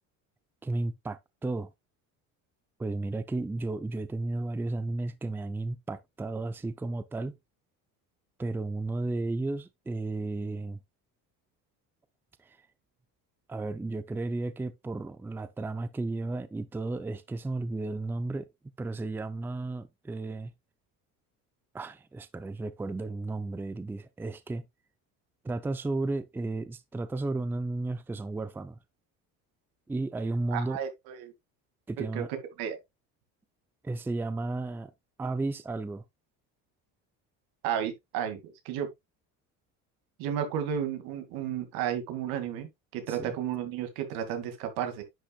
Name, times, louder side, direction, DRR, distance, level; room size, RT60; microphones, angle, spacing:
voice 1, 0.6-1.7 2.8-7.4 8.4-10.8 12.4-12.6 13.5-18.5 18.8-20.5 21.7-24.6 25.4-28.8 29.9-30.8 31.9-32.3 33.8-34.9 35.2-36.0 43.1-43.3, right 2 dB, 5° right, 0.5 m, -33 dB
voice 2, 30.5-31.3 32.0-32.2 32.6-32.8 37.6-38.9 40.2-45.0, right 9 dB, 85° right, 2.4 m, -33 dB
10.0 x 6.1 x 2.4 m
cardioid pair, 140°, 35 cm